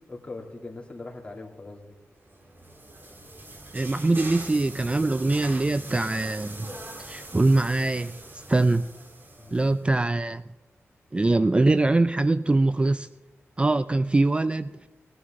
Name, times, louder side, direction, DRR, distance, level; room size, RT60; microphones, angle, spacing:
voice 1, 0.1-2.0 9.4-9.9, left 2 dB, 25° left, -2 dB, 2.8 m, -41 dB
sound 1, 2.3-9.8, right 2 dB, 45° right, 2.5 m, -42 dB
voice 2, 3.7-6.7 7.0-8.9 9.5-10.4 11.1-13.1 13.6-14.7, right 2 dB, 20° right, 13 dB, 0.3 m, -23 dB
19.0 x 10.5 x 3.8 m, 1.2 s
cardioid pair, 75°, 5 cm